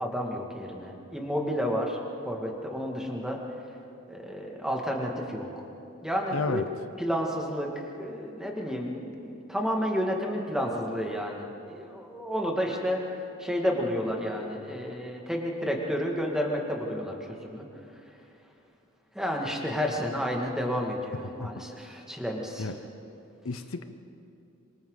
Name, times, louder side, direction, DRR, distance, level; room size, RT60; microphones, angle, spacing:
voice 1, 0.0-2.0 2.2-3.4 4.1-5.5 6.0-6.6 7.0-7.7 8.0-13.0 13.4-17.7 19.1-22.7, equal, 5° right, -1 dB, 2.2 m, -31 dB
voice 2, 6.3-6.7 21.4-21.7 22.6-22.8 23.4-23.8, left 3 dB, 75° left, 9 dB, 0.9 m, -32 dB
26.5 x 24.0 x 4.1 m, 2.7 s
head